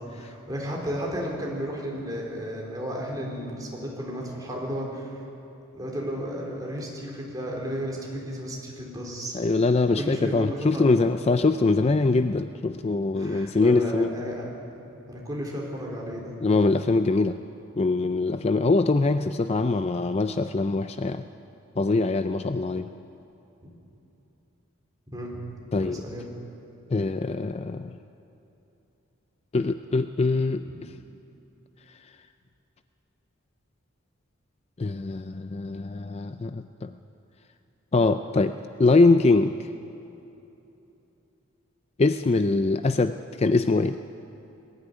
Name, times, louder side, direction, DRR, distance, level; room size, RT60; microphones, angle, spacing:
voice 1, 0.0-5.2 5.7-9.3 10.0-11.1 13.2-14.5 14.7-16.3 25.1-25.4 25.8-26.3 30.6-30.8, equal, 20° right, -2 dB, 3.7 m, -33 dB
voice 2, 9.3-14.1 16.4-17.4 17.8-21.2 21.8-22.9 25.7-26.0 26.9-27.9 29.5-30.9 34.8-36.9 37.9-39.6 42.0-44.0, left 3 dB, 30° left, 10 dB, 0.4 m, -23 dB
20.0 x 13.5 x 9.7 m, 2.9 s
head